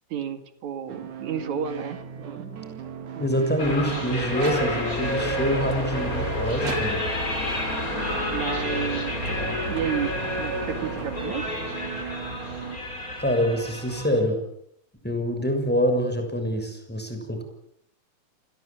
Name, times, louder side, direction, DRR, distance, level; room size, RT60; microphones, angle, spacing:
voice 1, 0.1-2.7 3.0-3.6 3.9-4.1 8.3-9.1 9.6-10.1 10.4-11.5, right 8 dB, 75° right, 9 dB, 3.4 m, -32 dB
sound 1, 0.9-12.8, right 8 dB, 90° right, 3.5 m, -38 dB
voice 2, 3.2-7.0 13.2-14.4 15.0-17.4, equal, 5° left, 6 dB, 6.6 m, -25 dB
sound 2, 3.6-14.2, left 1 dB, 25° left, 5.9 m, -29 dB
sound 3, 4.3-5.1 5.7-7.3 8.0-11.6, right 5 dB, 60° right, 3.8 m, -41 dB
29.5 x 21.5 x 8.9 m, 0.73 s
omnidirectional pair, 3.4 m